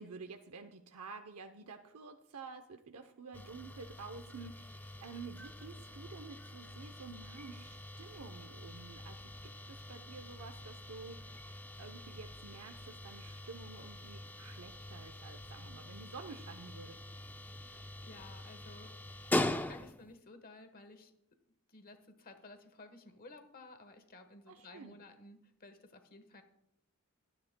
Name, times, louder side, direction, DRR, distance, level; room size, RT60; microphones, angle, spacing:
voice 1, 0.0-17.0 24.5-25.0, right 4 dB, 80° right, 5 dB, 0.8 m, -50 dB
sound 1, 3.3-20.2, left 1 dB, 10° left, 0.4 m, -43 dB
voice 2, 17.6-18.9 19.3-21.1 21.7-26.4, left 2 dB, 40° left, 7 dB, 1.3 m, -55 dB
26.5 x 10.5 x 2.2 m, 0.77 s
head